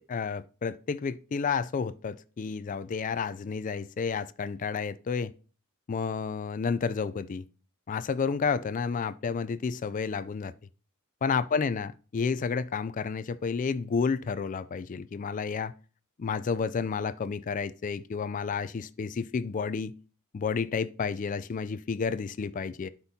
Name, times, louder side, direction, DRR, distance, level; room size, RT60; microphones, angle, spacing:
voice 1, 0.1-5.3 5.9-7.4 7.9-10.5 11.2-15.7 16.2-19.9 20.3-22.9, left 5 dB, 35° left, 0.3 m, -31 dB
11.5 x 6.0 x 2.8 m
head